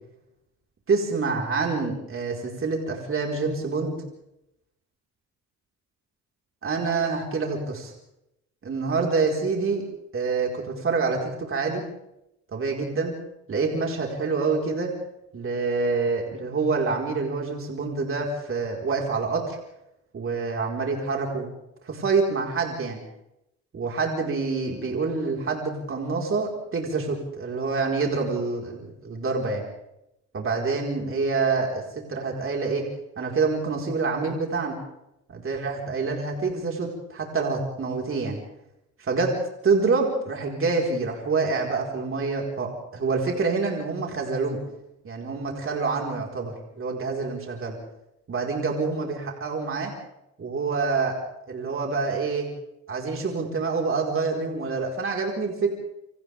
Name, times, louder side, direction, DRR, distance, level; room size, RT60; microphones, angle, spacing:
voice 1, 0.9-4.0 6.6-7.9 8.6-9.8 10.1-11.8 12.5-13.1 13.5-14.9 15.3-19.6 20.1-21.5 21.8-23.0 23.7-29.6 30.3-31.8 32.1-32.9 33.2-34.8 35.3-38.4 39.0-39.3 39.6-44.6 45.0-47.7 48.3-49.9 50.4-51.2 51.5-52.5 52.9-55.7, right 4 dB, 45° right, 0 dB, 4.9 m, -26 dB
29.0 x 26.0 x 3.6 m, 0.83 s
cardioid pair, 90°, 30 cm